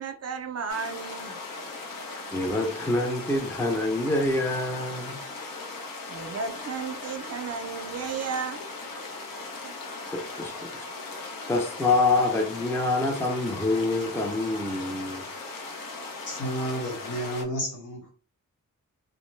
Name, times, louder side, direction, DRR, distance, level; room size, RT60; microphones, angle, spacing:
voice 1, 0.0-1.4 6.1-8.6 9.6-9.7, right 6 dB, 50° right, 0.4 m, -33 dB
sound 1, 0.7-17.4, left 3 dB, 85° left, 0.8 m, -38 dB
voice 2, 2.3-5.2 10.1-10.9 11.5-15.2, left 2 dB, 10° left, 0.4 m, -26 dB
voice 3, 16.3-18.1, equal, 65° left, 1.1 m, -31 dB
2.5 x 2.1 x 3.1 m
wide cardioid pair, 130°, 33 cm